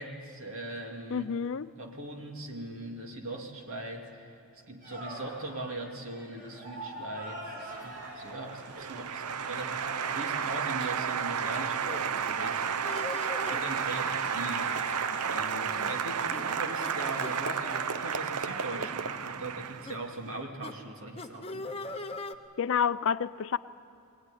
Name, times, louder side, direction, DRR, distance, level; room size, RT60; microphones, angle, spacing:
voice 1, 0.0-1.4 1.8-12.6 13.5-14.7 15.2-22.0, right 2 dB, 65° right, 2 dB, 2.7 m, -40 dB
voice 2, 1.1-1.7 22.6-23.6, left 7 dB, 60° left, 15 dB, 0.5 m, -28 dB
sound 1, 4.8-18.9, right 1 dB, 40° right, 7.2 m, -44 dB
Applause, 7.7-20.2, right 7 dB, 90° right, 0.7 m, -32 dB
sound 2, 11.8-12.0 12.8-13.7 14.6-15.0 15.3-15.4 15.7-16.0 16.3-16.4 16.8-16.9 17.2-17.4 18.0-18.2 18.7-18.9 19.9-20.0 20.6-20.7 21.2-22.3, left 2 dB, 25° left, 0.8 m, -40 dB
21.0 x 19.5 x 9.9 m, 2.5 s
head